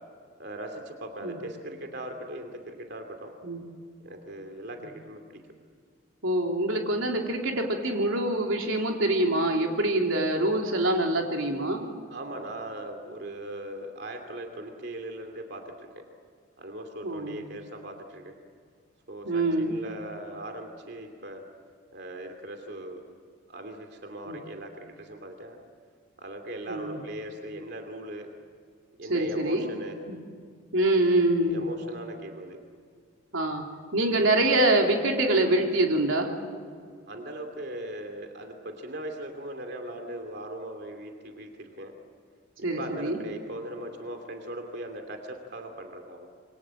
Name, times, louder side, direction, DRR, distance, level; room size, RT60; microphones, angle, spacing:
voice 1, 0.4-3.3 4.0-5.4 12.1-16.0 16.6-18.3 19.1-21.4 21.9-23.0 23.5-25.6 26.2-28.3 29.0-30.0 31.5-32.6 37.1-41.9 42.6-46.3, right 1 dB, 55° right, 4 dB, 2.8 m, -39 dB
voice 2, 6.2-11.8 17.0-17.4 19.3-19.7 24.3-24.4 26.7-27.0 29.1-29.7 30.1-30.2 30.7-31.6 33.3-33.6 33.9-36.3 42.6-43.2, right 1 dB, 90° right, 1 dB, 3.4 m, -25 dB
27.0 x 24.0 x 7.7 m, 2.1 s
head